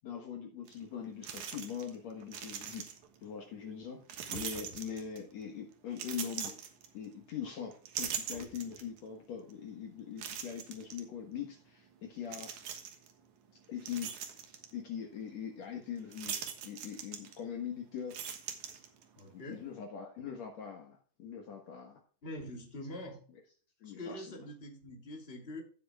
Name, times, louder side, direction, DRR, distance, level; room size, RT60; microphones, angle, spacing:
voice 1, 0.0-2.8 3.2-4.0 4.3-6.5 6.9-12.6 13.7-14.3 14.7-16.4 16.6-18.2 19.3-22.0 23.8-24.3, left 8 dB, 60° left, 2 dB, 2.4 m, -42 dB
sound 1, 0.7-0.8 1.2-2.0 2.2-3.2 4.1-5.3 5.9-7.3 7.7-9.0 9.5-9.6 10.2-11.0 12.3-13.1 13.6-14.7 16.1-17.6 18.0-19.2, right 8 dB, 70° right, 2.7 m, -41 dB
voice 2, 19.2-19.7 22.2-23.2 23.8-25.6, left 1 dB, 20° left, 1 dB, 2.6 m, -44 dB
15.5 x 7.7 x 2.3 m, 0.42 s
omnidirectional pair, 3.7 m